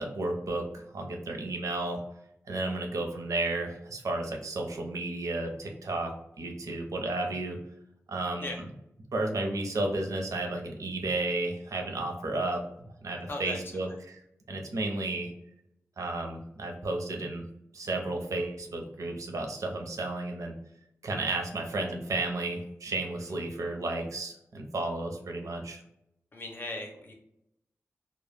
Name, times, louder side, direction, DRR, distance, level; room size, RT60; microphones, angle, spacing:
voice 1, 0.0-2.0 2.5-7.6 8.1-8.5 9.1-13.9 14.5-15.3 16.0-17.5 17.7-20.5 21.0-25.8, right 2 dB, 80° right, 2 dB, 0.5 m, -33 dB
voice 2, 13.3-13.6 26.3-27.1, left 2 dB, 40° left, 1 dB, 0.6 m, -37 dB
2.1 x 2.0 x 3.2 m, 0.79 s
wide cardioid pair, 120°, 5 cm